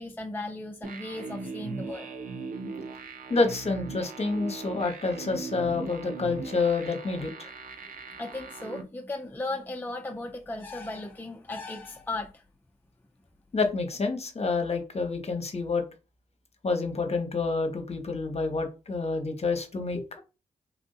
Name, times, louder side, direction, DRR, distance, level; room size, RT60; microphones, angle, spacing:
voice 1, 0.0-2.1 8.1-12.4, left 2 dB, 15° left, 0.5 m, -36 dB
sound 1, 0.8-8.8, right 4 dB, 65° right, 0.6 m, -39 dB
voice 2, 3.3-7.5 13.5-15.8 16.6-20.2, left 3 dB, 45° left, 0.9 m, -28 dB
3.4 x 2.6 x 2.3 m
supercardioid pair, 45°, 15 cm